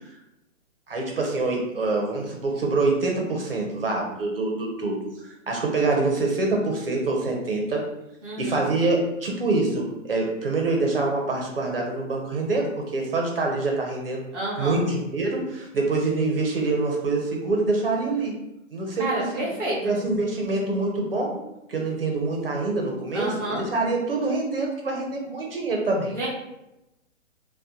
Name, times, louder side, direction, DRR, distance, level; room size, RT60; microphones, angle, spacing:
voice 1, 0.9-5.0 5.5-7.8 8.4-14.3 14.6-18.3 18.7-19.1 19.8-21.4 21.7-26.1, right 3 dB, 45° right, 0 dB, 0.6 m, -25 dB
voice 2, 8.2-8.6 14.3-14.8 19.0-19.9 23.1-23.6 26.1-26.3, right 1 dB, ahead, -17 dB, 0.6 m, -29 dB
3.6 x 2.1 x 2.7 m, 0.91 s
hypercardioid pair, 180°, 39 cm